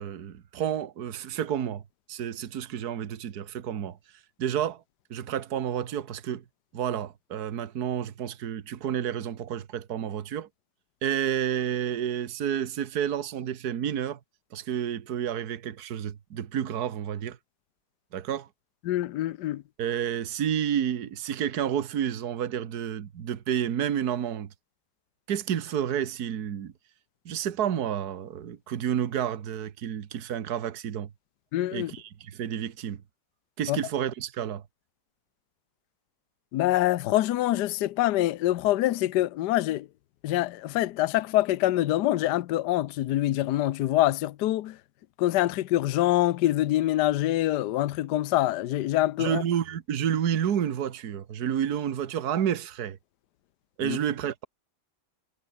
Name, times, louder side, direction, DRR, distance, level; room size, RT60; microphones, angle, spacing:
voice 1, 0.0-1.8 2.1-4.0 4.4-4.8 5.1-6.4 6.7-10.5 11.0-14.2 14.5-17.4 18.1-18.5 19.8-24.5 25.3-26.7 27.3-31.1 31.7-33.0 33.6-34.6 49.2-53.0 53.8-54.4, right 9 dB, 60° right, 1.7 m, -30 dB
voice 2, 18.9-19.6 31.5-31.9 33.7-33.8 36.5-39.9 40.2-44.8 45.2-49.4 53.8-54.0, left 15 dB, 70° left, 1.3 m, -25 dB
omnidirectional pair, 1.9 m